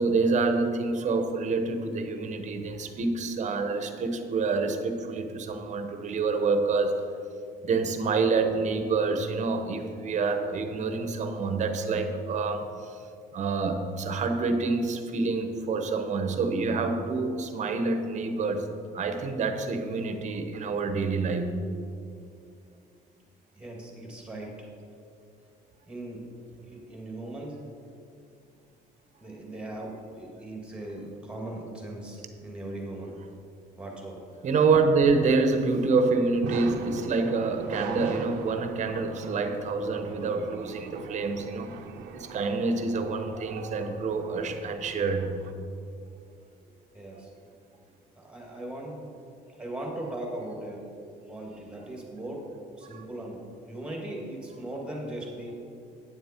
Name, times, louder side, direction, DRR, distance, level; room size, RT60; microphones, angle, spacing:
voice 1, 0.0-7.0 7.6-13.0 13.3-18.7 18.9-21.5 34.4-41.7 42.1-45.3 52.9-53.0, right 4 dB, 45° right, 7 dB, 1.0 m, -27 dB
voice 2, 23.6-24.7 25.9-26.4 26.6-27.6 29.2-33.2 33.8-34.2 46.9-47.3 48.2-49.0 49.5-50.9 51.2-52.4 52.8-55.5, right 1 dB, 5° right, -1 dB, 2.2 m, -39 dB
sound 1, 35.0-45.5, right 5 dB, 90° right, 0.7 m, -41 dB
9.7 x 7.3 x 4.5 m, 2.5 s
cardioid pair, 110°, 17 cm